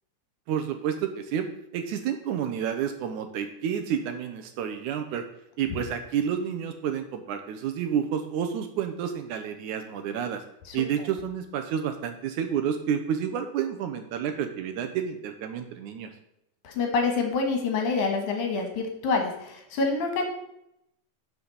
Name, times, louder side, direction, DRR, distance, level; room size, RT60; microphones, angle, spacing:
voice 1, 0.5-1.5 1.7-5.2 5.6-10.4 10.7-16.1, right 8 dB, 75° right, 6 dB, 2.1 m, -30 dB
voice 2, 16.6-20.3, left 4 dB, 70° left, 3 dB, 2.7 m, -27 dB
11.0 x 6.0 x 4.0 m, 0.79 s
omnidirectional pair, 3.8 m